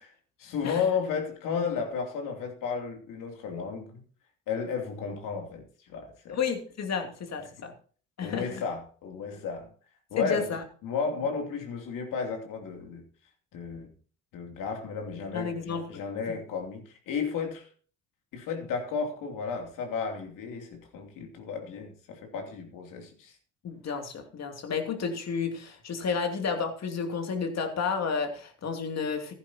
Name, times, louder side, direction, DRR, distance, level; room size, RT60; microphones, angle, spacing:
voice 1, 0.4-3.9 4.5-6.4 8.2-9.7 10.1-10.5 10.8-13.0 13.5-13.9 14.3-17.7 18.3-23.3, left 5 dB, 65° left, 3 dB, 2.9 m, -33 dB
voice 2, 6.3-7.7 8.2-8.6 10.2-10.6 15.3-16.0 16.3-16.4 23.6-29.3, left 5 dB, 50° left, 5 dB, 2.6 m, -31 dB
14.5 x 11.0 x 2.9 m, 0.42 s
hypercardioid pair, 60°, 34 cm